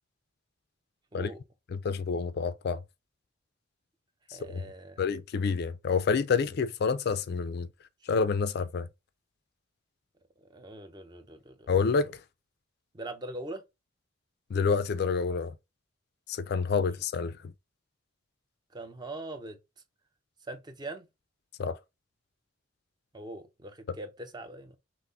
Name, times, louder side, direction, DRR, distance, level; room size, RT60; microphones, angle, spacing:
voice 1, 1.7-2.8 4.5-4.6 5.0-7.7 8.1-8.9 11.7-12.1 14.5-15.5 16.3-17.5 21.6-21.8, left 5 dB, 50° left, 0.3 m, -28 dB
voice 2, 4.3-5.1 10.4-11.7 12.9-13.6 18.7-19.6 20.4-21.1 23.1-24.8, right 2 dB, 20° right, 0.6 m, -42 dB
5.8 x 2.0 x 3.8 m
head